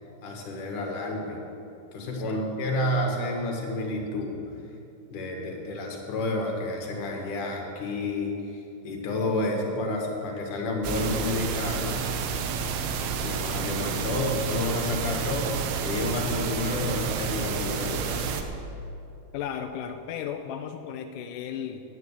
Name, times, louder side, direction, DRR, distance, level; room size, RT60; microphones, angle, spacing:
voice 1, 0.2-1.4 1.9-4.4 5.1-12.0 13.2-15.6 15.8-18.4, left 2 dB, 60° left, 0 dB, 3.0 m, -30 dB
voice 2, 2.0-2.5 19.3-21.8, left 8 dB, 80° left, 6 dB, 1.9 m, -35 dB
sound 1, 10.8-18.4, right 6 dB, 85° right, 2.7 m, -30 dB
9.5 x 9.0 x 8.2 m, 2.7 s
omnidirectional pair, 4.3 m